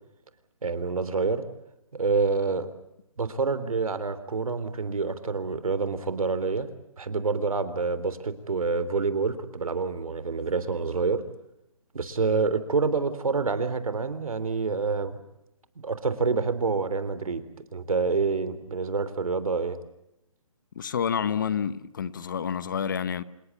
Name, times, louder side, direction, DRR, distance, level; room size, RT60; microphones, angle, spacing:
voice 1, 0.6-1.4 1.9-2.7 3.2-6.7 7.0-11.2 11.9-15.2 15.8-17.4 17.7-19.8, right 4 dB, 75° right, 3.6 m, -27 dB
voice 2, 20.7-23.2, left 7 dB, 35° left, 1.0 m, -28 dB
27.5 x 19.5 x 8.4 m
hypercardioid pair, 170°, 18 cm